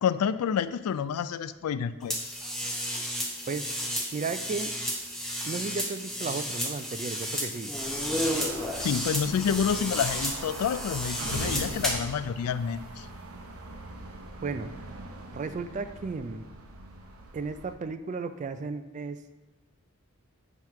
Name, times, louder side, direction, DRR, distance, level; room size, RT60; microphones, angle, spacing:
voice 1, 0.0-2.5 8.8-13.1, left 7 dB, 80° left, 13 dB, 0.3 m, -29 dB
sound 1, 2.1-12.1, equal, ahead, 0.8 m, -32 dB
voice 2, 4.1-4.7 5.4-7.8 14.4-14.7 15.3-16.5 17.3-19.2, right 4 dB, 35° right, 10 dB, 0.3 m, -34 dB
sound 2, 7.8-17.7, right 2 dB, 70° right, 0.7 m, -41 dB
7.6 x 3.0 x 5.6 m, 1.2 s
head